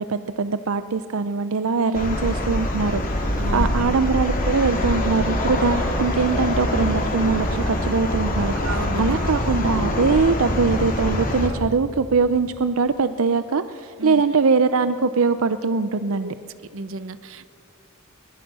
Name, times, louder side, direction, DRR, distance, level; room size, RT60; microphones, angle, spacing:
voice 1, 0.0-8.5 9.0-16.3, right 4 dB, 85° right, 11 dB, 0.6 m, -22 dB
sound 1, 1.9-11.5, left 1 dB, 40° left, 3.0 m, -24 dB
voice 2, 3.4-4.0 8.6-9.3 14.0-14.2 16.2-16.3 16.7-17.5, right 2 dB, 70° right, 13 dB, 1.0 m, -32 dB
22.5 x 21.0 x 6.2 m, 2.3 s
head